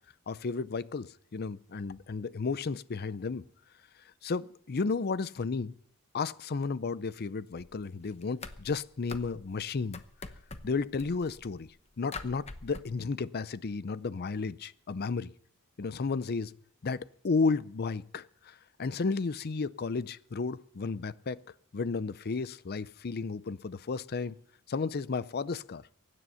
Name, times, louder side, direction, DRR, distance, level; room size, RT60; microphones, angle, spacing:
voice 1, 0.3-1.1 1.3-3.4 4.2-5.7 6.1-10.0 10.6-11.7 12.0-15.3 15.8-16.5 16.8-18.3 18.8-21.4 21.7-24.3 24.7-25.8, left 4 dB, 45° left, 0.5 m, -33 dB
sound 1, 7.6-7.9 8.1-9.6 9.9-11.7 12.1-12.8, left 3 dB, 30° left, 0.9 m, -44 dB
23.5 x 9.9 x 5.6 m
head